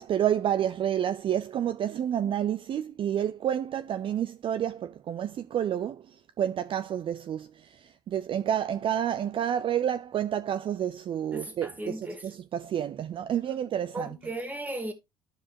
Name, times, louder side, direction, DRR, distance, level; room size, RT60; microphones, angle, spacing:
voice 1, 0.0-14.2, right 10 dB, 45° right, 0.4 m, -29 dB
voice 2, 11.3-12.2 13.9-14.9, right 1 dB, 15° right, 2.1 m, -36 dB
13.0 x 4.8 x 2.8 m
supercardioid pair, 90°, 12 cm